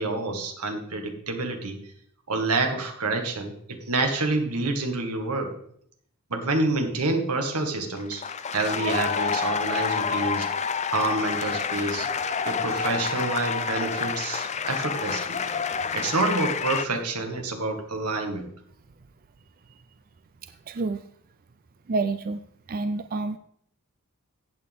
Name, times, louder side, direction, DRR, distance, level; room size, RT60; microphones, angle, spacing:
voice 1, 0.0-1.9 2.3-5.5 6.3-8.2 8.5-10.6 10.9-12.1 12.4-15.4 15.9-18.5, right 2 dB, 90° right, 5 dB, 1.8 m, -28 dB
sound 1, 8.0-16.8, left 6 dB, 30° left, 0.5 m, -28 dB
voice 2, 20.4-21.0 21.9-22.4 22.7-23.4, right 3 dB, 40° right, 10 dB, 0.4 m, -29 dB
15.0 x 8.7 x 3.6 m, 0.68 s
head